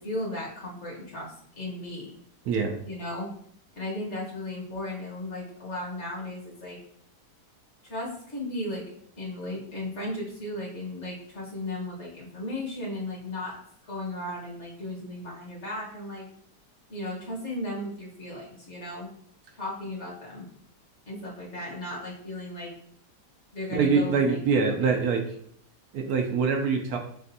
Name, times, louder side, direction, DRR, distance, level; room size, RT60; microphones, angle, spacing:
voice 1, 0.0-2.1 2.9-3.3 3.8-6.8 7.8-8.8 9.2-13.5 13.8-16.3 16.9-19.1 19.6-20.5 21.1-22.7 23.5-24.9, left 1 dB, 45° left, -4 dB, 1.4 m, -35 dB
voice 2, 2.5-2.8 23.7-25.2 25.9-27.0, right 5 dB, 70° right, 2 dB, 1.0 m, -24 dB
6.7 x 2.4 x 2.6 m, 0.67 s
omnidirectional pair, 1.8 m